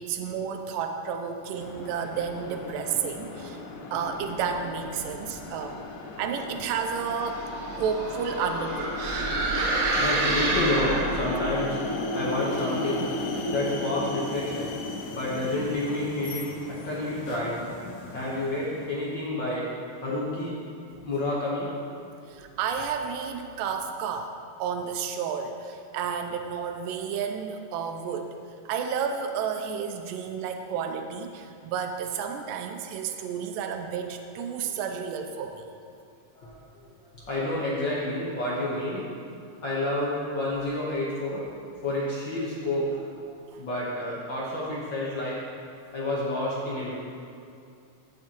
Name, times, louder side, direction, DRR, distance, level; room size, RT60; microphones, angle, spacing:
voice 1, 0.0-3.6 3.9-5.8 6.2-7.4 7.8-9.0 22.3-28.3 28.7-35.6 43.5-43.6, right 6 dB, 90° right, 5 dB, 2.2 m, -31 dB
sound 1, 1.5-19.0, left 2 dB, 85° left, 2.4 m, -35 dB
voice 2, 6.0-6.7 7.9-8.0 9.4-11.8 12.1-13.1 13.5-14.8 15.1-17.6 18.1-19.7 20.0-20.6 21.0-21.7 22.4-22.5 28.0-28.2 29.1-29.2 33.6-33.8 34.7-35.0 36.3-36.5 37.3-39.1 39.6-41.4 41.8-45.4 45.9-46.9, left 1 dB, 55° left, -6 dB, 1.2 m, -30 dB
sound 2, 7.0-11.4, right 3 dB, 70° right, 1.3 m, -28 dB
15.5 x 7.5 x 3.0 m, 2.4 s
omnidirectional pair, 3.9 m